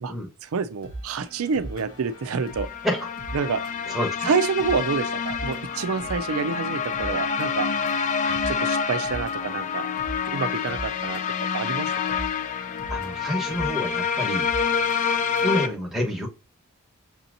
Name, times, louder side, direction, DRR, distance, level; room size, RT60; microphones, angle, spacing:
voice 1, 0.4-2.7 3.3-3.6 4.2-7.7 8.5-9.9 10.3-11.2 11.5-12.2, right 5 dB, 70° right, 0.4 m, -27 dB
sound 1, 0.8-15.8, right 1 dB, 65° left, 1.1 m, -41 dB
sound 2, 2.3-15.7, left 6 dB, 35° left, 0.3 m, -27 dB
voice 2, 3.9-4.3 8.2-8.4 12.9-14.5 15.4-16.3, equal, ahead, 1.1 m, -28 dB
6.0 x 2.8 x 2.5 m
head